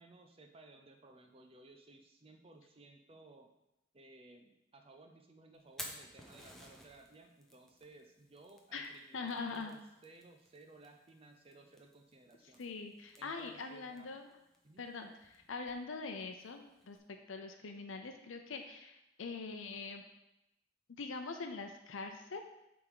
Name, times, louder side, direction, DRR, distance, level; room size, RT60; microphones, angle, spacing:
voice 1, 0.0-3.5 3.9-12.7 13.2-14.1 14.6-14.9, right 2 dB, 30° right, 5 dB, 0.5 m, -59 dB
Fire, 5.6-17.0, equal, ahead, 0.8 m, -56 dB
voice 2, 8.7-9.7 12.6-14.3 14.8-17.0 17.3-20.0 21.0-22.4, left 4 dB, 85° left, 5 dB, 0.6 m, -43 dB
8.5 x 3.6 x 4.8 m, 0.88 s
head